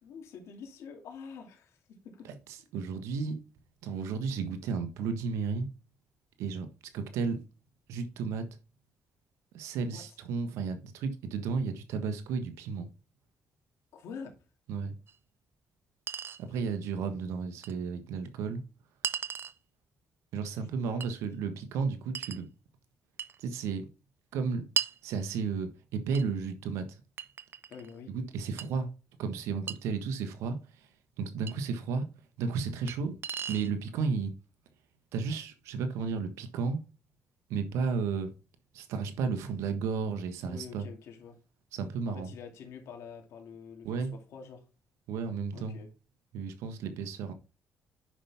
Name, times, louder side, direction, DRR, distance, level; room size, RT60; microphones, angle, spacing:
voice 1, 0.0-2.3 9.9-10.0 13.9-14.4 16.5-16.7 20.5-21.0 27.7-28.2 40.4-41.4 42.1-44.7 45.5-45.9, left 6 dB, 80° left, 2.5 m, -47 dB
voice 2, 2.7-3.4 3.8-5.7 6.4-6.7 6.9-7.4 7.9-8.5 9.5-12.9 14.7-14.9 16.4-18.6 20.3-22.5 23.4-23.9 24.3-24.6 25.0-27.0 28.1-28.9 29.2-30.9 31.2-32.1 32.4-33.2 33.5-34.3 35.1-36.8 37.5-38.3 38.7-40.8 41.7-42.3 43.8-44.1 45.1-45.8 46.3-47.3, right 5 dB, 85° right, 1.4 m, -33 dB
Chink clink, 15.1-15.2 16.1-16.4 17.6-17.7 19.0-19.6 21.0-21.1 22.1-22.4 23.2-23.4 24.8-25.0 26.1-26.3 27.2-27.9 28.6-28.7 29.7-29.8 31.5-31.6 32.9-33.0 33.2-33.7, right 7 dB, 55° right, 0.7 m, -35 dB
9.9 x 5.8 x 3.6 m
supercardioid pair, 65°, 5 cm